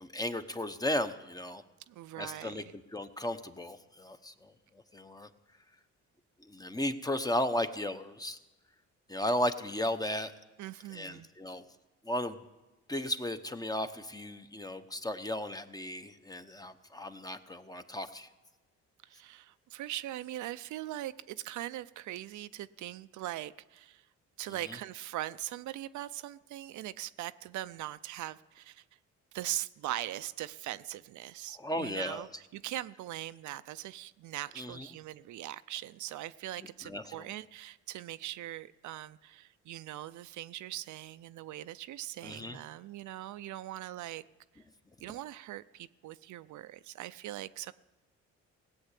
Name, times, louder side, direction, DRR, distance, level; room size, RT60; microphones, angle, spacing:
voice 1, 0.0-1.6 2.2-4.5 4.9-5.3 6.4-8.4 9.1-10.3 10.9-11.6 12.0-12.4 12.9-18.3 24.6-24.8 31.6-32.3 34.6-34.9 36.6-37.3 42.2-42.6 45.1-45.2, left 1 dB, 10° left, 9 dB, 0.9 m, -35 dB
voice 2, 1.9-2.7 10.6-11.3 19.1-24.0 24.4-28.8 29.3-44.2 45.0-47.7, right 14 dB, 75° right, 13 dB, 0.5 m, -41 dB
17.0 x 7.9 x 8.3 m, 1.1 s
cardioid pair, 90°, 30 cm